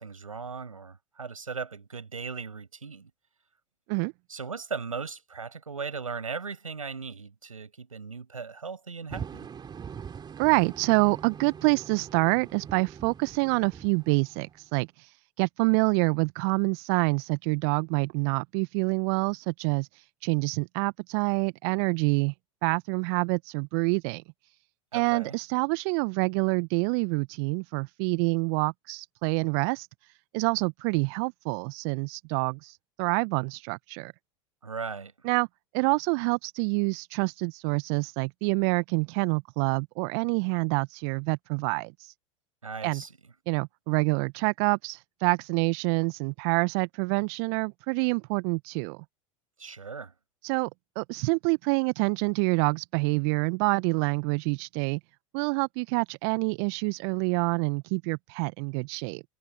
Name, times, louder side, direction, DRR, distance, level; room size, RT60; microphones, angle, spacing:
voice 1, 0.0-3.1 4.3-9.5 24.9-25.4 34.6-35.1 42.6-43.1 49.6-50.1, right 5 dB, 85° right, 6.2 m, -38 dB
sound 1, 9.1-14.8, right 7 dB, 25° right, 3.3 m, -43 dB
voice 2, 10.4-22.3 22.6-24.2 24.9-29.9 30.3-34.1 35.2-35.5 35.7-42.1 42.8-43.0 43.5-49.0 50.4-50.7 51.0-55.0 55.3-59.2, right 35 dB, 50° right, 0.9 m, -27 dB
figure-of-eight pair, 85°, 17 cm